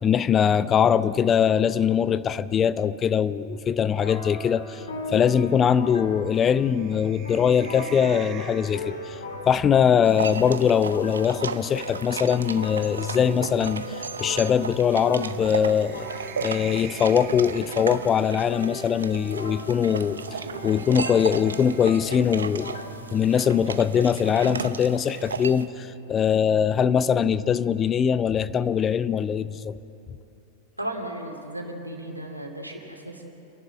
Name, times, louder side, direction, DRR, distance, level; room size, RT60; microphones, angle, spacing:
voice 1, 0.0-4.8 5.1-9.2 9.5-16.1 16.4-20.2 20.6-22.8 23.1-29.8, left 8 dB, 25° left, 15 dB, 0.5 m, -22 dB
sound 1, 3.9-9.5 10.8-13.8 15.2-18.6 19.9-22.8, right 10 dB, 35° right, 1.2 m, -48 dB
sound 2, 4.0-22.9, left 2 dB, 65° left, 2.5 m, -40 dB
sound 3, 10.0-25.7, right 5 dB, 70° right, 0.7 m, -35 dB
voice 2, 30.8-33.2, right 1 dB, 85° right, 2 dB, 2.6 m, -35 dB
29.0 x 11.5 x 7.8 m, 2.8 s
figure-of-eight pair, 90°, 0 cm